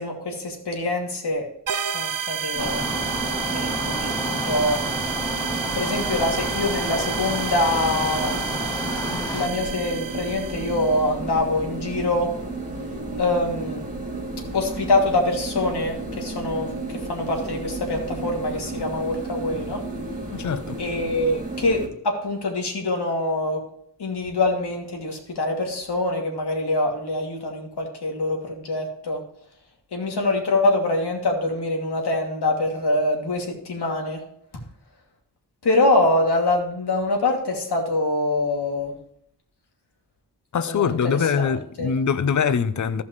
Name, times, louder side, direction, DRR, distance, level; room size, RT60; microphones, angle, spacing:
voice 1, 0.0-1.5 1.9-2.9 3.5-4.9 5.7-8.4 8.8-12.3 13.2-13.8 14.5-19.8 20.8-23.6 24.0-29.2 29.9-34.2 35.6-38.9 40.6-41.9, left 2 dB, 70° left, 2.7 m, -24 dB
sound 1, 1.7-11.0, right 7 dB, 50° right, 0.7 m, -30 dB
sound 2, 2.5-21.9, right 2 dB, 20° right, 2.7 m, -33 dB
sound 3, 2.6-9.5, left 1 dB, 10° left, 0.6 m, -31 dB
voice 2, 20.3-20.8 40.5-43.0, left 6 dB, 45° left, 0.7 m, -23 dB
15.0 x 5.6 x 3.2 m
cardioid pair, 75°, 41 cm